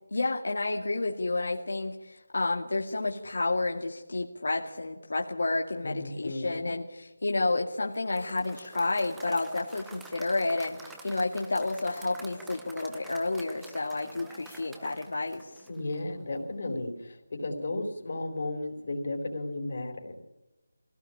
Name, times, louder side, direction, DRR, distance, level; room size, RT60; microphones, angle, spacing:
voice 1, 0.1-15.7, left 2 dB, 55° left, 1 dB, 2.2 m, -30 dB
voice 2, 5.8-6.8 15.7-20.2, left 2 dB, 35° left, 4 dB, 4.0 m, -34 dB
Applause / Crowd, 7.9-16.1, right 2 dB, 5° right, 0.8 m, -49 dB
24.0 x 17.0 x 8.6 m, 1.1 s
figure-of-eight pair, 180°, 0 cm